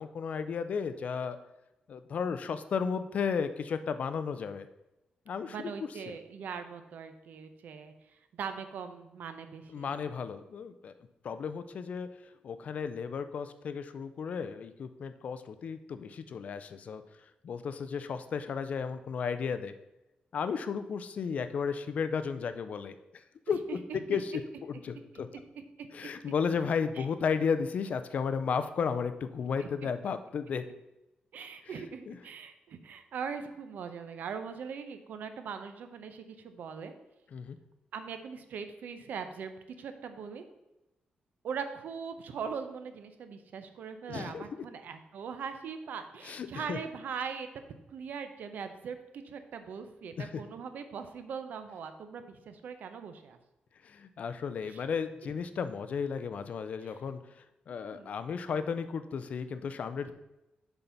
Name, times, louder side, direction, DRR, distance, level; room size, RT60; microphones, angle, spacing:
voice 1, 0.0-1.4 1.9-4.7 5.3-6.2 9.7-10.9 11.2-12.1 12.4-17.0 17.4-19.7 20.3-23.8 24.1-24.3 24.6-25.3 25.9-30.6 32.1-32.2 37.3-37.6 44.1-44.5 46.2-46.8 50.2-50.3 53.8-60.1, left 6 dB, 50° left, 11 dB, 0.5 m, -34 dB
voice 2, 5.5-9.9 11.3-11.4 23.7-24.0 25.1-25.2 25.5-26.1 27.0-27.1 29.6-29.7 31.3-36.9 37.9-40.4 41.4-47.5 47.9-53.4 54.6-54.8 57.9-58.1 60.0-60.1, right 6 dB, 70° right, 8 dB, 0.7 m, -41 dB
7.0 x 4.0 x 5.8 m, 0.94 s
wide cardioid pair, 165°, 3 cm